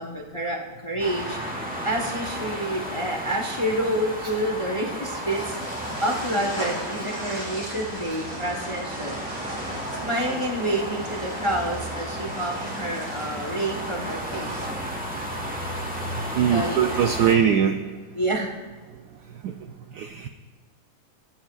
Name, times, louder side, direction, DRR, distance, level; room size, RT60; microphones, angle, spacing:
voice 1, 0.0-1.4 1.8-5.6 6.0-9.3 10.0-14.6 16.5-16.8 18.1-18.5, right 1 dB, 40° left, 1 dB, 0.4 m, -28 dB
sound 1, 1.0-17.4, equal, 5° right, 0.8 m, -33 dB
sound 2, 5.3-14.7, right 1 dB, 20° right, 2.6 m, -38 dB
voice 2, 16.3-17.8 19.4-19.5 20.0-20.3, right 8 dB, 80° right, 5 dB, 0.9 m, -21 dB
23.5 x 8.1 x 2.4 m, 1.3 s
omnidirectional pair, 2.3 m